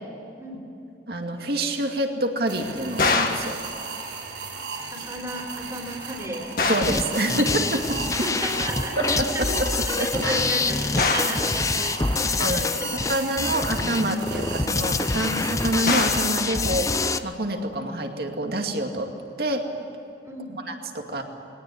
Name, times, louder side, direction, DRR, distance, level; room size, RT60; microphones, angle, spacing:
voice 1, 1.1-3.6 6.7-8.0 9.2-9.3 10.0-10.4 12.4-12.7 13.1-19.1 19.4-19.7 20.7-21.2, right 1 dB, 60° right, 4 dB, 2.4 m, -27 dB
Screw Scream, 2.5-17.2, right 4 dB, 90° right, 4.3 m, -36 dB
sound 1, 3.0-3.5 6.6-7.1 11.0-11.5 15.9-16.3, left 4 dB, 50° left, 1.9 m, -23 dB
voice 2, 4.8-6.5 8.2-9.4 9.8-12.9 13.4-14.7 20.2-20.6, right 1 dB, 20° right, -2 dB, 3.5 m, -34 dB
sound 2, 6.8-17.2, left 3 dB, 20° left, 0.6 m, -26 dB
21.0 x 18.5 x 9.7 m, 2.8 s
head